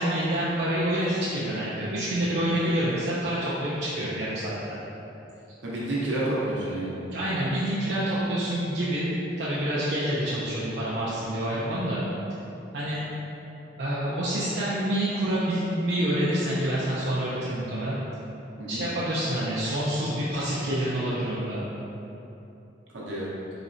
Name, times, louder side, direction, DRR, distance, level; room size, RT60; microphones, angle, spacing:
voice 1, 0.0-4.8 7.1-9.1 9.4-12.0 12.7-13.0 13.8-18.0 18.7-21.6, right 1 dB, 60° right, -8 dB, 0.5 m, -27 dB
voice 2, 5.6-6.9 18.6-18.8 22.9-23.3, right 1 dB, 85° right, -6 dB, 0.9 m, -29 dB
4.0 x 3.1 x 2.6 m, 2.9 s
head